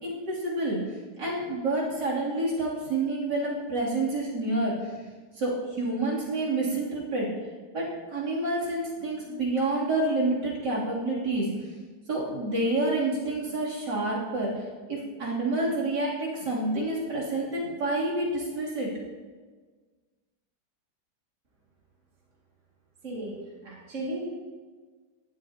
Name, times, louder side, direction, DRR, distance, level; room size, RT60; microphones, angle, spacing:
voice 1, 0.0-0.8 1.2-4.9 5.3-7.3 7.7-11.5 12.1-18.9, right 2 dB, 65° right, -6 dB, 3.7 m, -28 dB
voice 2, 23.0-23.4 23.6-24.2, right 1 dB, 45° right, -5 dB, 2.7 m, -35 dB
18.0 x 12.5 x 2.9 m, 1.4 s
omnidirectional pair, 1.9 m